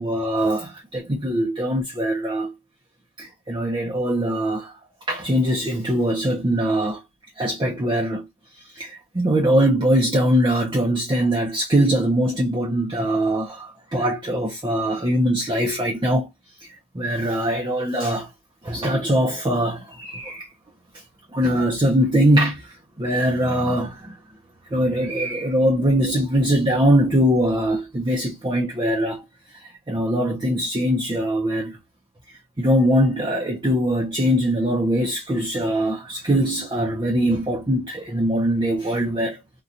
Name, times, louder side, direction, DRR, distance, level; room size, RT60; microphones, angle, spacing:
voice 1, 0.0-2.5 3.2-4.7 5.1-7.0 7.4-8.3 8.7-16.3 16.6-18.3 18.6-20.5 21.3-24.2 24.7-29.2 29.5-31.8 32.6-39.4, equal, 25° right, 0.6 m, -22 dB
3.7 x 2.3 x 2.6 m
head